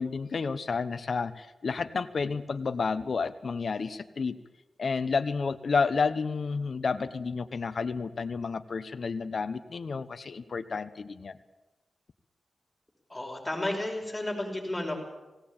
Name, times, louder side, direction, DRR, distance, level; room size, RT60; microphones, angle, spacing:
voice 1, 0.0-4.4 4.8-11.4, left 5 dB, 55° left, 9 dB, 1.0 m, -30 dB
voice 2, 13.1-15.0, left 1 dB, 10° left, 0 dB, 5.6 m, -32 dB
18.0 x 17.5 x 8.8 m, 1.1 s
wide cardioid pair, 105°, 0 cm